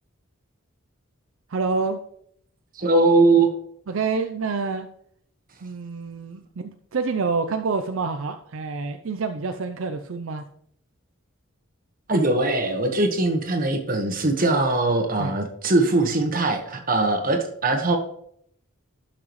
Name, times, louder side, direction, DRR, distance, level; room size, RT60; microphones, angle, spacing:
voice 1, 1.5-2.0 3.9-4.9 5.6-10.4 15.2-15.3, right 4 dB, 70° right, 7 dB, 0.5 m, -27 dB
voice 2, 2.8-3.5 12.1-18.0, right 2 dB, 40° right, 5 dB, 1.3 m, -21 dB
12.0 x 5.9 x 3.1 m, 0.68 s
head